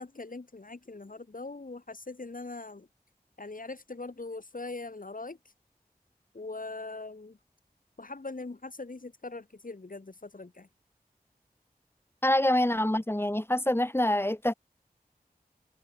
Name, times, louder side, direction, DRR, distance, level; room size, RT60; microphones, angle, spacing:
voice 1, 0.0-2.9 3.4-5.4 6.3-7.4 8.0-10.7, left 3 dB, 60° left, 4.1 m, -41 dB
voice 2, 12.2-14.5, left 1 dB, 15° left, 3.8 m, -26 dB
wide cardioid pair, 55°, 16 cm